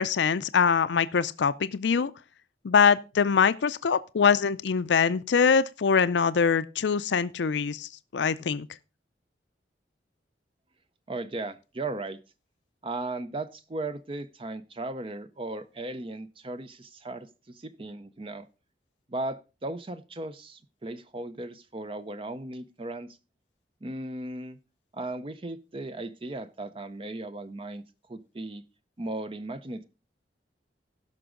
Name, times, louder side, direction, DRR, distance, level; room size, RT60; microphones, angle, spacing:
voice 1, 0.0-2.1 2.6-8.7, left 6 dB, 80° left, 0.5 m, -23 dB
voice 2, 11.1-12.2 12.8-18.5 19.1-23.1 23.8-24.6 24.9-27.8 28.1-28.6 29.0-29.9, right 2 dB, 30° right, 0.5 m, -36 dB
16.0 x 6.0 x 3.7 m
head